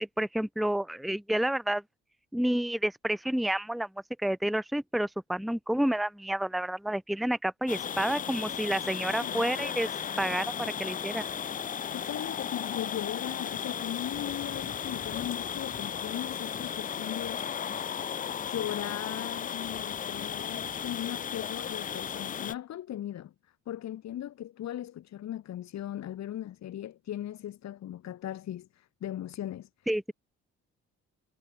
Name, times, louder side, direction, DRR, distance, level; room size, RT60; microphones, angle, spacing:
voice 1, 0.0-1.8 2.3-3.9 4.2-9.9 10.2-11.2 29.9-30.1, right 1 dB, ahead, 1.0 m, -29 dB
sound 1, 7.7-22.6, left 8 dB, 30° left, 0.4 m, -35 dB
voice 2, 11.9-17.4 18.4-23.3 23.7-29.7, left 12 dB, 60° left, 1.2 m, -38 dB
cardioid pair, 90°, 30 cm